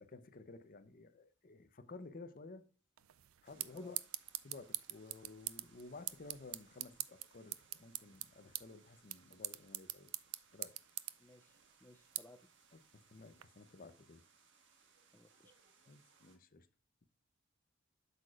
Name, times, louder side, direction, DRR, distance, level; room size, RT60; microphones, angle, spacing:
voice 1, 0.0-2.7 3.4-4.0 4.4-10.1 10.5-10.8 13.1-14.2 15.9-16.7, left 3 dB, 45° left, 0.7 m, -54 dB
sound 1, 3.0-13.4, right 16 dB, 80° right, 0.4 m, -46 dB
sound 2, 3.4-16.4, right 5 dB, 60° right, 1.4 m, -68 dB
voice 2, 11.2-12.5 15.1-15.5, left 1 dB, 10° left, 0.4 m, -61 dB
8.2 x 6.6 x 2.4 m
head